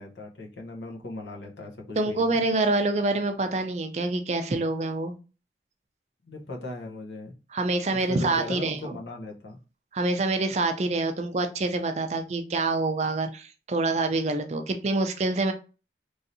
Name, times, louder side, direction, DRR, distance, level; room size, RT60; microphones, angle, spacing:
voice 1, 0.0-2.4 6.3-7.3 7.9-9.6, left 2 dB, 80° left, 0 dB, 0.7 m, -38 dB
voice 2, 2.0-5.1 7.5-9.0 9.9-15.5, right 2 dB, 35° right, 6 dB, 0.4 m, -26 dB
3.1 x 2.7 x 2.6 m, 0.33 s
head